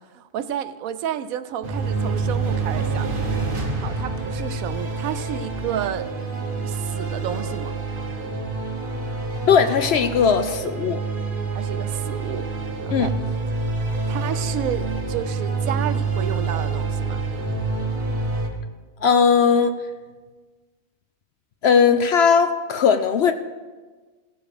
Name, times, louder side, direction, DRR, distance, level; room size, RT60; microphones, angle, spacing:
voice 1, 0.1-3.2 3.8-6.1 6.6-7.8 11.5-12.5 12.8-13.1 14.1-17.3, right 10 dB, 85° right, 12 dB, 1.1 m, -31 dB
sound 1, 1.6-18.5, right 4 dB, 40° right, 1.4 m, -27 dB
voice 2, 9.5-11.0 12.9-13.1 19.0-19.8 21.6-23.3, left 6 dB, 60° left, 9 dB, 0.7 m, -18 dB
16.5 x 7.0 x 4.9 m, 1.4 s
omnidirectional pair, 1.4 m